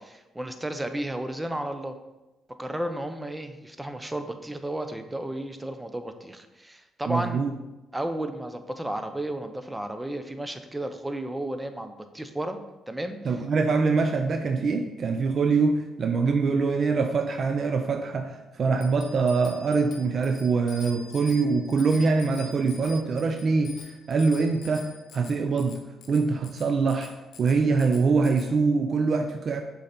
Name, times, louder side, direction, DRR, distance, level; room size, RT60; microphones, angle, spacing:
voice 1, 0.0-2.0 2.6-7.4 7.9-12.6 12.9-13.2, right 1 dB, 10° right, 8 dB, 0.6 m, -33 dB
voice 2, 7.1-7.5 13.2-24.9 25.1-25.8 26.1-27.1 27.4-29.6, right 4 dB, 50° right, 6 dB, 0.5 m, -24 dB
Bicycle bell, 18.8-28.5, left 4 dB, 75° left, 0.9 m, -47 dB
6.5 x 3.9 x 4.3 m, 1.0 s
cardioid pair, 90°, 0 cm